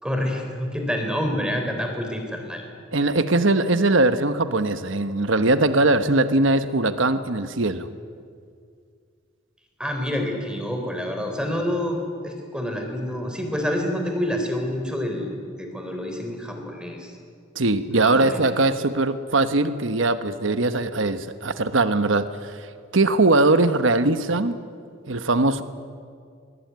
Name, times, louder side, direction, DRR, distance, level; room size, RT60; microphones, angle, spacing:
voice 1, 0.0-2.6 9.8-12.0 12.2-15.3 15.6-17.1 18.0-18.4, equal, 5° right, 3 dB, 3.8 m, -27 dB
voice 2, 2.9-7.9 17.5-22.6 22.9-24.6 25.1-25.6, right 2 dB, 70° right, 11 dB, 1.2 m, -21 dB
23.5 x 22.5 x 9.5 m, 2.2 s
head